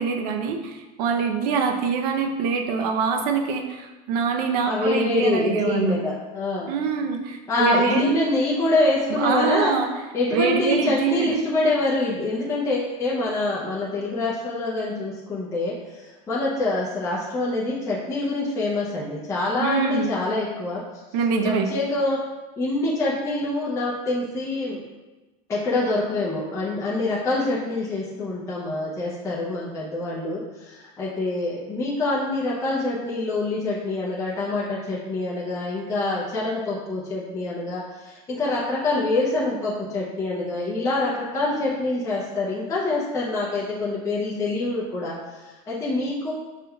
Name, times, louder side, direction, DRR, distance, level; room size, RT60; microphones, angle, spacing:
voice 1, 0.0-6.0 6.7-8.1 9.1-9.9 10.3-11.4 19.6-20.1 21.1-21.7, right 5 dB, 75° right, 4 dB, 0.6 m, -24 dB
voice 2, 4.7-6.7 7.5-9.7 10.1-20.8 21.4-22.2 22.6-24.8 25.5-46.3, left 2 dB, 15° left, -7 dB, 0.5 m, -25 dB
5.1 x 3.6 x 2.3 m, 1.2 s
supercardioid pair, 155°, 21 cm